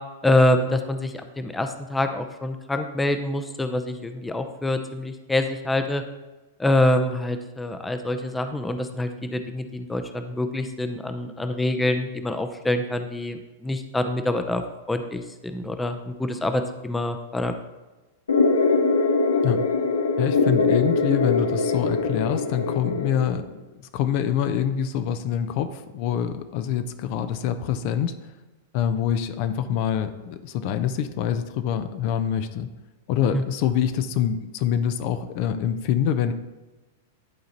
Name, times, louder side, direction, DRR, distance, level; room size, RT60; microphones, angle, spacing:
voice 1, 0.2-6.0 6.6-14.6 14.9-17.5 33.3-33.4, left 1 dB, 10° left, 8 dB, 0.6 m, -25 dB
sound 1, 18.3-23.3, left 3 dB, 90° left, 0.8 m, -22 dB
voice 2, 20.2-23.5 23.9-28.3 28.7-32.7 33.1-36.3, left 9 dB, 50° left, 10 dB, 0.6 m, -25 dB
11.0 x 3.9 x 4.2 m, 1.1 s
hypercardioid pair, 105°, 0 cm